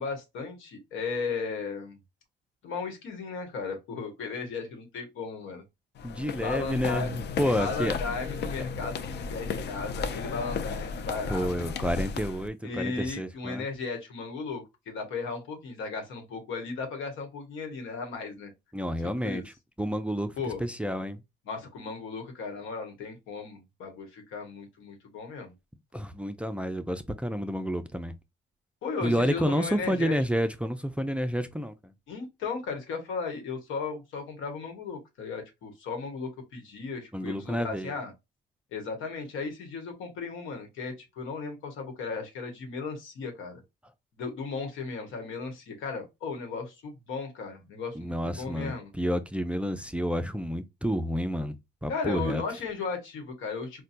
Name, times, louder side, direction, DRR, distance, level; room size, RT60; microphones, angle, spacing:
voice 1, 0.0-2.0 2.6-5.6 6.4-7.1 7.6-11.7 12.6-18.5 19.2-19.4 20.4-20.6 21.5-25.5 28.8-30.2 32.1-38.1 38.7-43.6 44.2-48.9 51.9-53.8, left 4 dB, 85° left, 1.1 m, -36 dB
sound 1, 6.0-12.5, left 5 dB, 60° left, 0.5 m, -34 dB
voice 2, 6.0-8.0 11.3-13.6 18.7-19.4 19.8-20.3 20.6-21.2 25.9-28.1 29.0-31.9 37.1-37.9 47.9-51.6 51.8-52.4, equal, 5° right, 0.4 m, -30 dB
4.1 x 2.2 x 2.5 m
cardioid pair, 90°, 20 cm